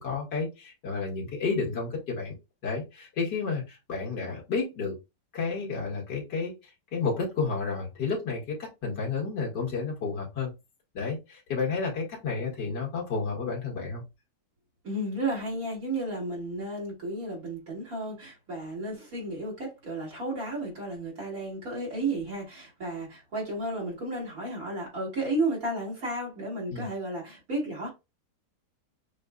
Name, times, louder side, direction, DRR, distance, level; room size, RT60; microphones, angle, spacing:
voice 1, 0.0-2.3 2.6-4.9 5.3-6.5 6.9-10.5 10.9-14.0 26.7-26.9, left 4 dB, 85° left, 2.3 m, -31 dB
voice 2, 14.8-27.9, right 2 dB, 55° right, 2.8 m, -33 dB
6.8 x 2.6 x 2.3 m
omnidirectional pair, 1.8 m